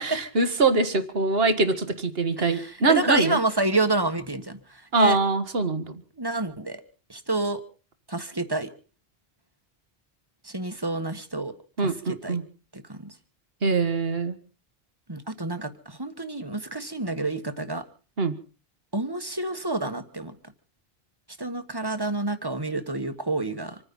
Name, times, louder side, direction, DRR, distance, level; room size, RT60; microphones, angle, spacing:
voice 1, 0.0-3.4 4.9-6.0 11.8-12.4 13.6-14.4 18.2-18.4, right 3 dB, 70° right, 11 dB, 1.8 m, -23 dB
voice 2, 2.4-5.2 6.2-6.8 7.1-7.6 8.1-8.7 10.4-11.5 11.8-12.4 12.7-13.1 15.1-17.8 18.9-20.3 21.4-23.8, right 2 dB, 25° right, 9 dB, 1.4 m, -29 dB
26.5 x 9.9 x 5.4 m, 0.38 s
omnidirectional pair, 1.0 m